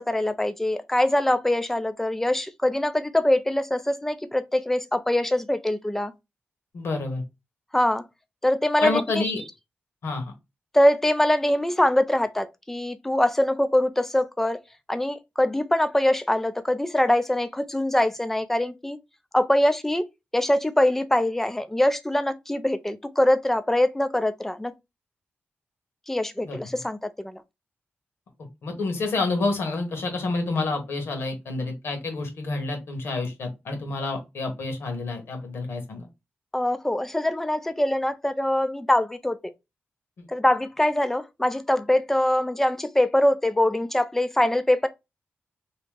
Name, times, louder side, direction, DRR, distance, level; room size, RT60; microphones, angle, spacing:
voice 1, 0.0-6.1 7.7-8.0 8.4-9.2 10.7-14.6 14.9-19.0 19.3-20.0 20.3-24.7 26.1-27.0 27.2-27.4 36.5-39.5 40.3-44.9, left 1 dB, 10° left, 0.4 m, -23 dB
voice 2, 6.7-7.2 8.8-9.4 10.0-10.3 26.4-26.6 28.6-36.1, left 3 dB, 75° left, 1.2 m, -28 dB
2.9 x 2.7 x 3.4 m
wide cardioid pair, 135°, 4 cm